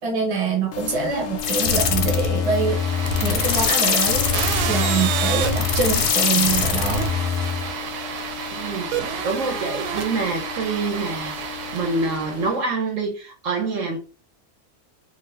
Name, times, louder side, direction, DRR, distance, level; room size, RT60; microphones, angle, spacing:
voice 1, 0.0-4.4 4.7-7.1, right 5 dB, 30° right, 0.7 m, -25 dB
sound 1, 0.7-12.5, left 10 dB, 70° left, 0.8 m, -36 dB
sound 2, 1.4-7.7, left 6 dB, 90° left, 1.1 m, -22 dB
sound 3, 2.4-12.6, right 7 dB, 85° right, 1.1 m, -30 dB
voice 2, 8.5-14.0, right 3 dB, 65° right, 0.9 m, -26 dB
2.7 x 2.5 x 3.2 m
omnidirectional pair, 1.6 m